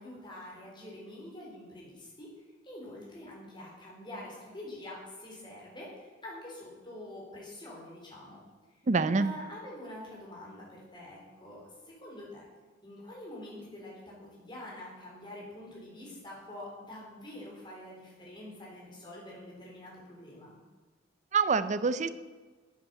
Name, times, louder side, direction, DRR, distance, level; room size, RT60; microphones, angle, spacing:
voice 1, 0.0-2.3 2.6-8.4 9.1-12.4 12.8-20.6, left 1 dB, 25° left, -4 dB, 3.8 m, -46 dB
voice 2, 8.9-9.3 21.3-22.1, right 4 dB, 40° right, 13 dB, 0.5 m, -26 dB
8.8 x 8.2 x 6.8 m, 1.3 s
head